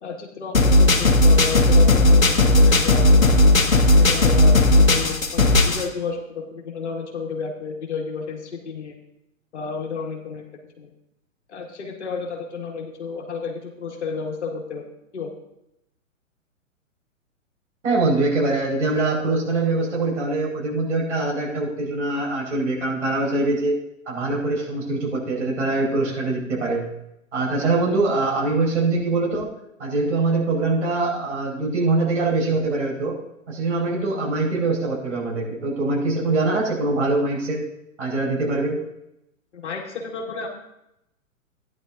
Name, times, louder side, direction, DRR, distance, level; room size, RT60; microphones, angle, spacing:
voice 1, 0.0-3.5 4.0-9.0 9.5-10.4 10.8-10.9 11.5-14.8 15.1-15.3 39.5-40.5, left 5 dB, 55° left, 1 dB, 2.1 m, -31 dB
sound 1, 0.5-5.8, left 1 dB, 75° left, 1.4 m, -15 dB
voice 2, 17.8-23.8 24.1-26.8 27.3-29.5 29.8-33.2 33.5-37.6 38.0-38.8, right 2 dB, 60° right, -2 dB, 5.2 m, -23 dB
16.0 x 10.5 x 2.7 m, 0.83 s
figure-of-eight pair, 120°, 41 cm